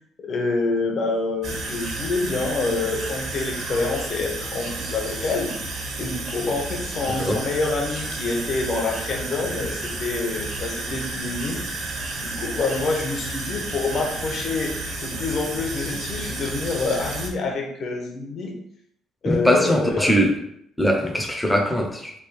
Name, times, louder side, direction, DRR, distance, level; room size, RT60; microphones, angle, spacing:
voice 1, 0.2-5.5 6.0-14.7 15.0-18.5 19.2-20.1, left 3 dB, 50° left, 1 dB, 0.9 m, -27 dB
sound 1, 1.4-17.3, right 2 dB, 60° right, 0.9 m, -31 dB
voice 2, 19.2-20.4 20.8-22.1, equal, 5° left, 1 dB, 0.6 m, -21 dB
3.5 x 2.3 x 4.2 m, 0.71 s
cardioid pair, 125°, 0 cm